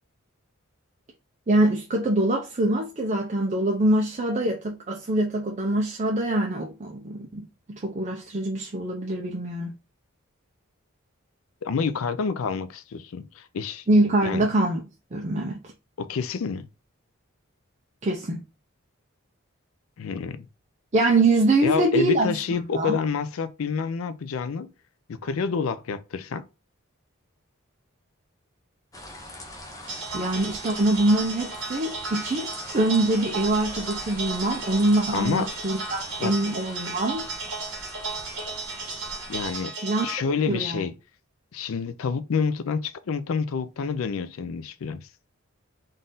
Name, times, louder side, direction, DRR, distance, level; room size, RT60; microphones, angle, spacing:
voice 1, 1.5-9.7 13.9-14.8 15.1-15.6 18.0-18.4 20.9-23.0 30.1-32.5 32.7-37.2 39.8-40.1 40.5-40.8, right 2 dB, 35° right, 0.6 m, -24 dB
voice 2, 11.6-13.9 14.2-14.4 16.0-16.7 20.0-20.5 21.6-24.7 25.1-26.4 35.1-35.5 36.2-36.3 39.3-39.7 40.0-40.9 41.5-45.1, left 5 dB, 75° left, 0.4 m, -28 dB
sound 1, 28.9-39.6, left 1 dB, 15° left, 0.7 m, -42 dB
sound 2, 29.9-40.2, right 3 dB, 60° right, 1.4 m, -35 dB
3.9 x 2.6 x 3.7 m
head